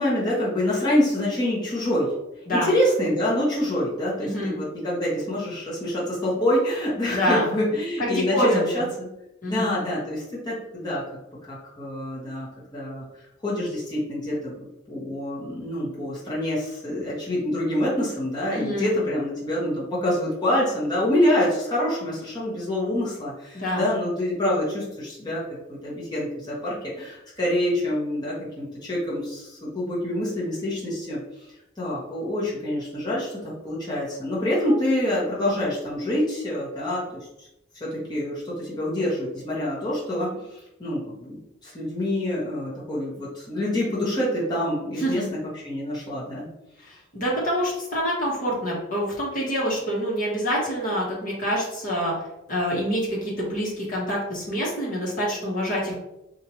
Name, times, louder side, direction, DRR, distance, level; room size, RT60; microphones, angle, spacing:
voice 1, 0.0-2.1 2.5-9.1 9.4-11.0 11.5-13.1 13.4-25.4 25.7-31.2 31.8-37.1 37.4-37.5 37.7-41.4 41.6-45.2 45.6-46.5, left 1 dB, 20° left, -7 dB, 1.0 m, -26 dB
voice 2, 4.2-4.6 7.1-7.5 8.0-8.9 9.4-9.7 18.5-18.9 23.5-23.9 34.6-34.7 45.0-45.3 46.8-52.1 52.5-56.0, equal, 45° left, -5 dB, 1.2 m, -26 dB
4.5 x 2.5 x 2.9 m, 0.87 s
head